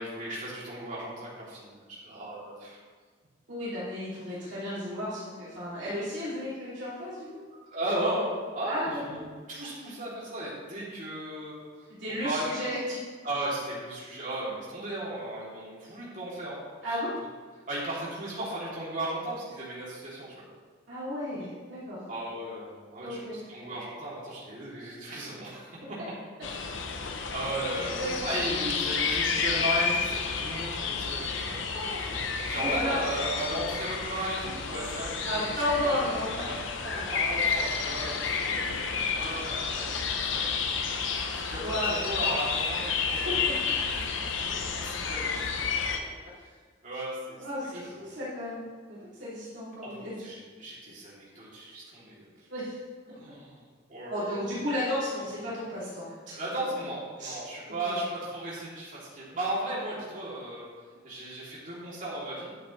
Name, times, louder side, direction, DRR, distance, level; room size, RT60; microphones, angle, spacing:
voice 1, 0.0-2.8 7.7-9.2 9.5-11.7 12.2-12.5 13.2-17.0 17.7-20.3 22.1-25.7 26.9-31.6 32.0-32.1 32.5-35.5 35.8-35.9 36.4-36.6 36.8-38.8 39.1-40.0 40.3-40.5 41.1-43.4 43.9-44.5 44.8-45.5 46.8-47.4 47.8-48.1 49.8-52.3 53.1-53.6 53.9-54.5 56.4-60.7 61.0-62.5, right 1 dB, 40° right, -7 dB, 3.1 m, -35 dB
voice 2, 3.5-7.4 8.6-8.9 12.0-12.8 16.8-17.1 20.9-22.0 23.0-23.4 28.0-28.3 31.6-32.1 32.5-33.0 35.2-36.4 41.6-42.0 43.2-43.3 43.6-44.0 46.0-46.1 47.4-48.6 48.9-50.3 52.5-52.7 54.1-56.4 57.2-57.4 57.8-58.0, left 1 dB, 60° right, -11 dB, 3.0 m, -33 dB
sound 1, 26.4-46.0, left 5 dB, 70° left, 0.8 m, -31 dB
10.5 x 8.4 x 3.3 m, 1.6 s
head